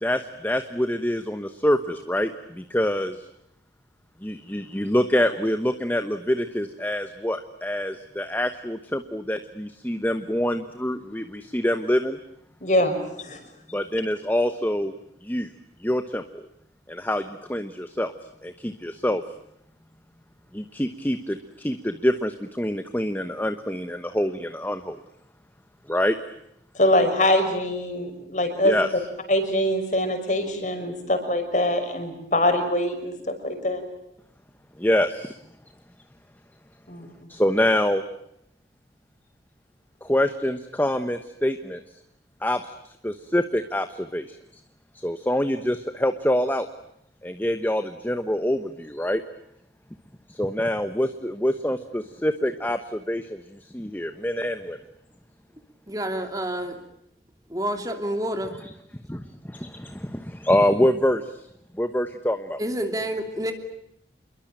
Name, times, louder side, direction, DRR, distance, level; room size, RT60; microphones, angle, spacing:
voice 1, 0.0-3.3 4.2-12.2 13.7-14.9 15.2-15.5 15.8-16.4 16.9-18.1 18.4-19.2 20.5-25.0 25.9-26.2 28.6-28.9 34.8-35.4 37.3-38.0 40.0-41.8 42.4-42.7 43.0-44.4 44.9-46.7 47.2-49.2 50.3-54.8 59.1-61.3 61.8-62.6, left 1 dB, 10° left, 8 dB, 1.1 m, -25 dB
voice 2, 12.6-13.4 26.7-28.7 29.3-33.8 36.9-37.1, left 1 dB, 45° left, 6 dB, 5.9 m, -23 dB
voice 3, 55.9-56.8 57.5-58.6 62.6-63.5, right 1 dB, 20° right, 5 dB, 2.9 m, -28 dB
28.5 x 22.5 x 8.9 m, 0.79 s
head